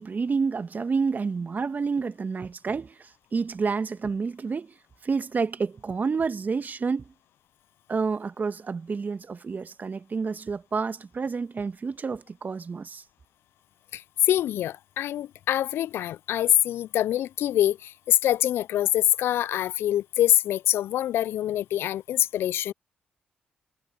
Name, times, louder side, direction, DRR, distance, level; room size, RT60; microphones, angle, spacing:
voice 1, 0.0-7.1 7.9-13.0, right 5 dB, 45° right, 1.6 m, -29 dB
voice 2, 13.9-22.7, left 12 dB, 70° left, 0.4 m, -25 dB
hypercardioid pair, 40°, 4 cm